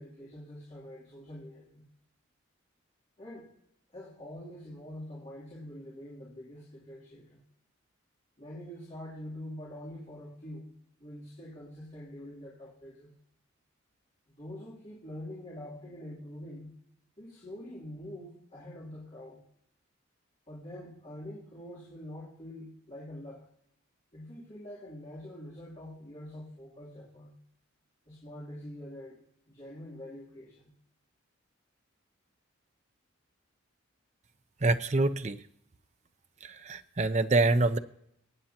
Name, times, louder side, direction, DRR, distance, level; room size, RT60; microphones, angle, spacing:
voice 1, 0.0-1.8 3.2-3.5 3.9-7.4 8.4-10.7 11.0-13.1 14.4-16.7 17.2-19.4 20.5-23.5 24.1-27.3 28.1-29.2 29.5-30.7, left 1 dB, 30° left, -8 dB, 3.0 m, -45 dB
voice 2, 34.6-35.4 36.4-37.8, right 2 dB, 30° right, 10 dB, 0.5 m, -26 dB
23.0 x 8.9 x 2.9 m, 0.74 s
head